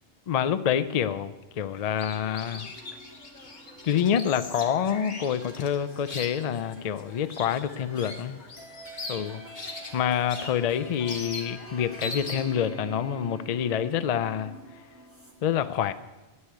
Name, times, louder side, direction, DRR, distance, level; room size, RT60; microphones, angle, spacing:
voice 1, 0.3-2.7 3.8-8.4 9.1-9.4 9.9-14.5 15.4-15.9, left 9 dB, 60° left, 12 dB, 0.4 m, -27 dB
sound 1, 1.8-12.6, left 2 dB, 45° left, 1.5 m, -41 dB
sound 2, 2.4-15.3, right 1 dB, 10° right, 1.7 m, -47 dB
9.6 x 8.4 x 9.6 m, 1.2 s
omnidirectional pair, 1.2 m